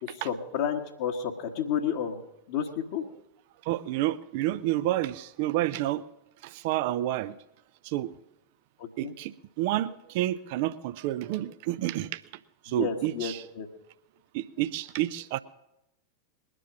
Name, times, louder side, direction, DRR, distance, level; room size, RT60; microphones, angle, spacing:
voice 1, 0.0-2.2 2.5-3.0 8.8-9.1 12.7-13.7, left 8 dB, 50° left, 0 dB, 1.3 m, -31 dB
voice 2, 3.7-6.0 6.4-7.4 7.8-8.1 9.0-12.2 12.6-13.4 14.3-15.4, right 14 dB, 50° right, 14 dB, 0.5 m, -29 dB
21.0 x 9.9 x 6.0 m, 0.88 s
figure-of-eight pair, 90°, 0 cm